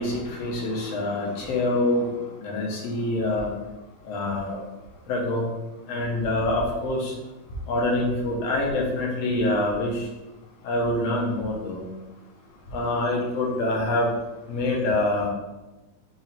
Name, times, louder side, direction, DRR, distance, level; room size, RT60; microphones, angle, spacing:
voice 1, 0.0-2.1 2.4-3.5 4.1-4.6 5.1-5.5 5.9-7.1 7.7-10.0 10.6-11.8 12.7-14.1 14.5-15.3, left 2 dB, 60° left, -3 dB, 2.2 m, -25 dB
5.9 x 3.8 x 4.4 m, 1.1 s
omnidirectional pair, 3.6 m